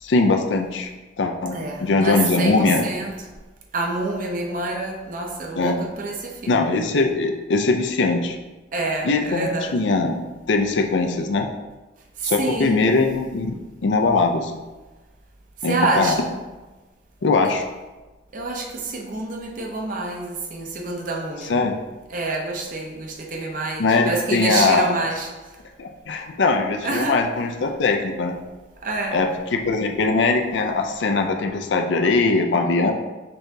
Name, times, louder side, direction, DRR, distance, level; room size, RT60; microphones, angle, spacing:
voice 1, 0.0-0.9 1.2-2.9 5.6-5.8 6.5-8.4 9.0-11.5 12.2-13.6 13.8-14.5 15.6-16.1 17.2-17.6 21.5-21.7 23.8-24.9 25.8-28.4 29.1-32.9, left 3 dB, 70° left, 4 dB, 0.5 m, -21 dB
voice 2, 1.5-3.2 3.7-6.8 8.7-9.8 12.2-12.8 15.7-16.3 18.3-21.6 22.1-25.3 26.8-27.2 28.8-29.2, right 3 dB, 45° right, 1 dB, 0.7 m, -27 dB
5.4 x 3.4 x 2.7 m, 1.2 s
head